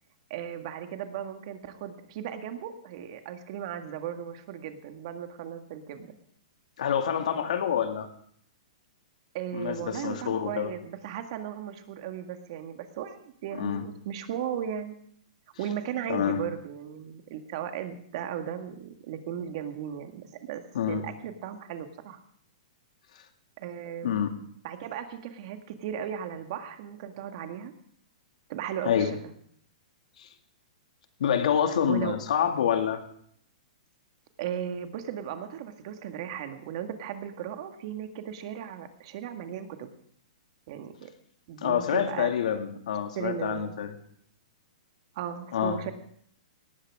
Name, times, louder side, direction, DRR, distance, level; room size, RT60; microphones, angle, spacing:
voice 1, 0.3-6.1 9.3-15.0 15.6-22.2 23.6-24.2 24.6-27.7 28.5-29.1 31.8-32.2 34.4-39.9 40.7-41.1 41.5-42.3 43.2-43.8 45.1-45.9, right 9 dB, 50° right, 7 dB, 1.8 m, -36 dB
voice 2, 6.8-8.1 9.5-10.7 13.6-13.8 16.1-16.4 20.7-21.0 24.0-24.3 28.8-29.1 30.2-30.3 31.2-33.0 41.6-43.9 45.5-45.8, left 8 dB, 70° left, 5 dB, 2.2 m, -27 dB
18.5 x 15.0 x 3.7 m, 0.64 s
hypercardioid pair, 150°, 4 cm